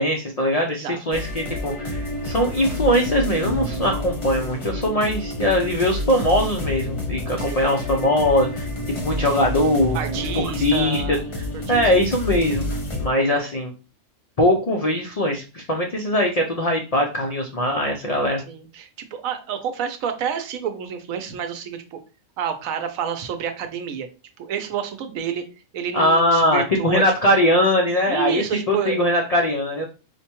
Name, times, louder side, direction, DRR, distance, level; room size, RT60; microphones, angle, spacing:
voice 1, 0.0-8.7 9.0-10.0 10.4-11.2 11.7-12.6 13.0-13.7 14.4-18.4 25.9-29.8, left 1 dB, 75° left, 1 dB, 0.3 m, -21 dB
voice 2, 0.6-1.0 7.4-7.7 9.9-11.2 11.7-11.9 18.5-22.0 22.4-24.1 24.4-25.4 25.7-27.0 28.1-29.0, right 8 dB, 80° right, 7 dB, 1.0 m, -29 dB
sound 1, 1.1-13.1, equal, 30° left, 0.6 m, -29 dB
4.8 x 2.2 x 2.9 m, 0.33 s
omnidirectional pair, 1.4 m